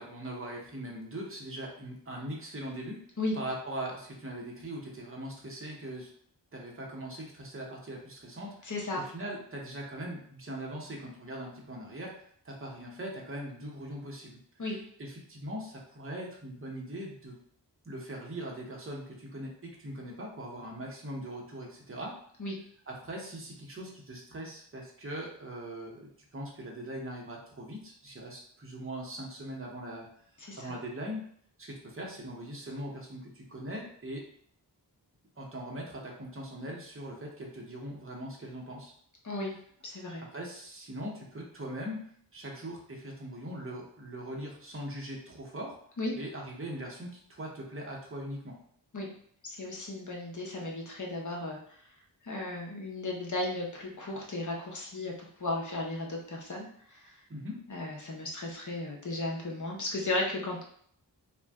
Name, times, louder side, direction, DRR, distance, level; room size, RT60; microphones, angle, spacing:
voice 1, 0.0-3.0 3.4-6.1 6.5-12.1 12.4-14.4 15.0-17.4 17.8-22.2 22.9-30.1 30.6-31.2 31.6-34.2 35.4-38.9 40.1-42.0 42.3-45.8 46.1-48.6 57.3-57.6, right 1 dB, 30° right, -1 dB, 0.8 m, -41 dB
voice 2, 8.6-9.0 14.6-14.8 22.4-22.6 30.4-30.7 39.2-39.6 39.8-40.3 46.0-46.1 48.9-49.1 49.4-51.6 52.2-55.1 55.4-57.1 57.7-60.6, left 2 dB, 45° left, -1 dB, 0.8 m, -35 dB
2.5 x 2.1 x 3.4 m, 0.62 s
wide cardioid pair, 75°, 42 cm